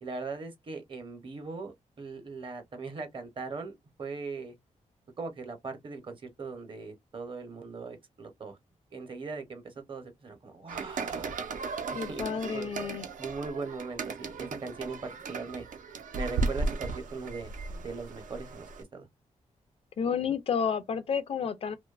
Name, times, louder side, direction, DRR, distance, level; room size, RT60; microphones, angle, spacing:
voice 1, 0.0-4.5 5.2-8.6 8.9-11.4 11.9-12.7 13.2-15.7 16.1-19.1, right 4 dB, 40° right, 0.7 m, -40 dB
sound 1, 10.7-18.8, right 3 dB, 85° right, 0.5 m, -36 dB
voice 2, 11.9-13.1 20.0-21.8, left 7 dB, 50° left, 0.4 m, -30 dB
2.6 x 2.1 x 2.3 m
wide cardioid pair, 145°, 13 cm